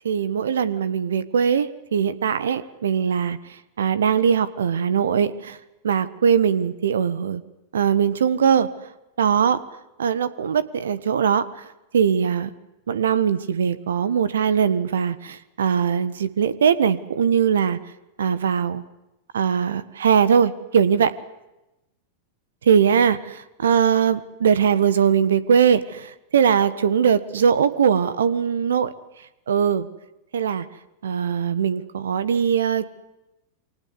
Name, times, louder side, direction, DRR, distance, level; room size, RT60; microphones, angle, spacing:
voice 1, 0.0-3.4 3.8-5.6 5.8-7.4 7.7-8.7 9.2-9.6 10.0-11.4 11.9-12.5 12.9-17.8 18.2-18.8 19.3-21.1 22.7-26.1 26.3-28.9 29.5-29.9 30.3-30.6 31.0-32.9, right 7 dB, 65° right, 17 dB, 1.4 m, -20 dB
28.5 x 25.0 x 8.0 m, 0.96 s
figure-of-eight pair, 90°, 0 cm